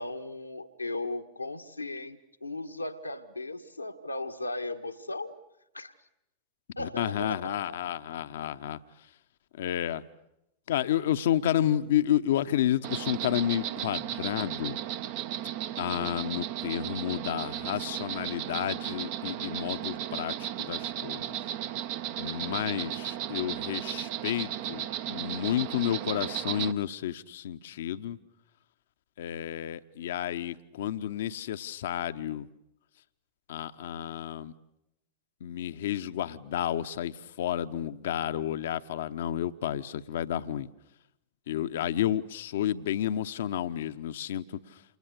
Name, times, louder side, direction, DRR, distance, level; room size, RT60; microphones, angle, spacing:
voice 1, 0.0-5.3 5.7-5.9 6.8-8.0, left 2 dB, 85° left, 1.6 m, -37 dB
voice 2, 6.8-8.8 9.5-10.0 10.7-14.8 15.8-21.4 22.2-28.2 29.2-32.5 33.5-34.5 35.4-40.7 41.5-44.6, left 11 dB, 60° left, 0.9 m, -31 dB
Insect, 12.8-26.7, right 12 dB, 50° right, 1.0 m, -35 dB
29.0 x 28.5 x 6.8 m
figure-of-eight pair, 90°, 0 cm